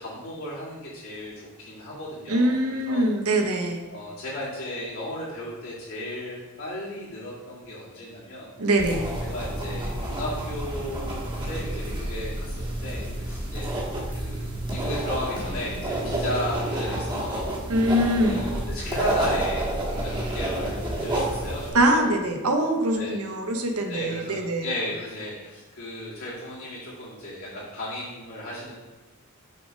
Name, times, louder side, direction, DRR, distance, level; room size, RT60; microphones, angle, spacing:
voice 1, 0.0-1.3 1.6-3.0 3.4-3.5 3.9-8.5 9.3-13.7 14.1-17.7 18.2-19.7 20.0-22.0 23.0-23.2 23.9-28.8, left 1 dB, 65° left, -8 dB, 1.9 m, -35 dB
voice 2, 2.3-3.8 8.6-9.0 17.7-18.4 21.7-24.7, right 1 dB, 80° right, 4 dB, 0.9 m, -23 dB
sound 1, 8.8-21.7, right 1 dB, 20° right, 1.4 m, -29 dB
6.5 x 4.1 x 5.0 m, 1.2 s
head